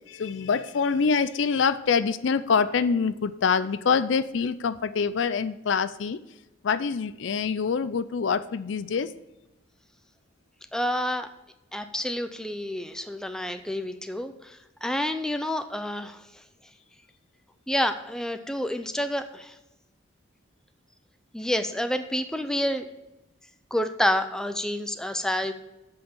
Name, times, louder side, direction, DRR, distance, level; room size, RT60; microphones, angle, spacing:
voice 1, 0.1-6.2 6.6-9.1, left 5 dB, 70° left, 14 dB, 0.4 m, -25 dB
voice 2, 10.7-11.3 11.7-16.2 17.7-19.5 21.3-22.9 23.7-25.5, left 1 dB, 5° left, 8 dB, 0.5 m, -28 dB
7.9 x 5.7 x 6.7 m, 0.95 s
head